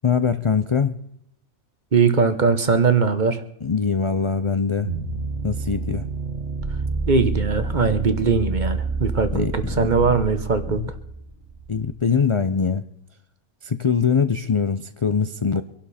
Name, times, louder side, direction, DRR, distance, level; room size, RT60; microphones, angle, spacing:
voice 1, 0.0-0.9 3.6-4.9 5.4-6.1 9.3-9.8 10.1-10.2 10.7-10.9 11.7-12.8 13.6-15.6, left 6 dB, 40° left, 11 dB, 0.5 m, -22 dB
voice 2, 1.9-3.4 7.1-10.8, right 5 dB, 40° right, 10 dB, 1.2 m, -20 dB
sound 1, 4.8-11.9, right 4 dB, 85° right, 2.0 m, -28 dB
24.5 x 11.5 x 4.3 m, 0.80 s
omnidirectional pair, 1.2 m